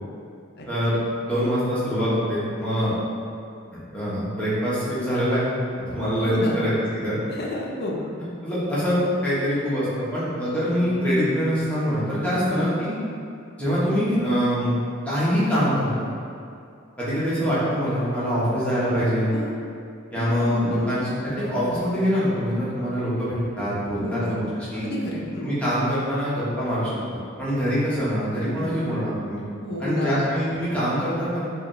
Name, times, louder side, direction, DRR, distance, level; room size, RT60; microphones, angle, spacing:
voice 1, 0.7-2.9 3.7-7.2 8.2-12.9 13.6-14.8 15.0-16.1 17.0-19.3 20.1-24.9 25.4-26.9 27.4-29.4 29.8-31.4, equal, 5° left, -10 dB, 1.0 m, -24 dB
voice 2, 6.2-6.6 7.3-8.0 12.3-12.7 19.3-19.6 20.2-20.9 23.9-24.4 24.7-25.5 28.6-28.9 29.6-30.2, left 1 dB, 50° left, -2 dB, 0.6 m, -30 dB
4.9 x 2.5 x 3.0 m, 2.5 s
head